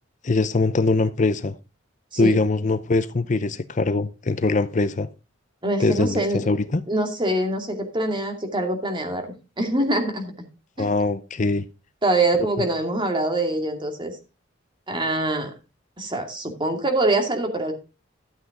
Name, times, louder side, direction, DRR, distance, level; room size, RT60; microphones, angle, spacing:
voice 1, 0.2-1.5 2.2-5.1 5.8-6.8 10.8-11.6, left 3 dB, 40° left, 0.6 m, -22 dB
voice 2, 5.6-6.5 6.9-10.3 10.8-10.9 12.0-14.2 14.9-15.5 16.0-17.7, right 2 dB, 25° right, 2.5 m, -24 dB
13.0 x 8.0 x 3.8 m
head